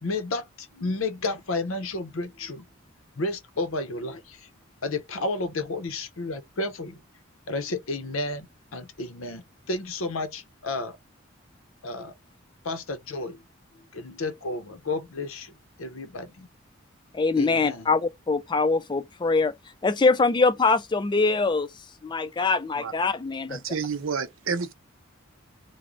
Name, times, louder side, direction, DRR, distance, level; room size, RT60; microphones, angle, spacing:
voice 1, 0.0-2.7 3.2-4.5 4.8-7.0 7.5-8.5 8.7-11.0 11.8-12.1 12.6-13.4 13.9-15.5 15.8-16.5 17.4-17.9, left 2 dB, 85° left, 0.7 m, -32 dB
voice 2, 17.1-19.5 19.8-21.7 22.0-23.6, left 3 dB, 20° left, 0.3 m, -23 dB
voice 3, 23.5-24.7, right 5 dB, 75° right, 0.7 m, -30 dB
3.1 x 2.1 x 3.7 m
head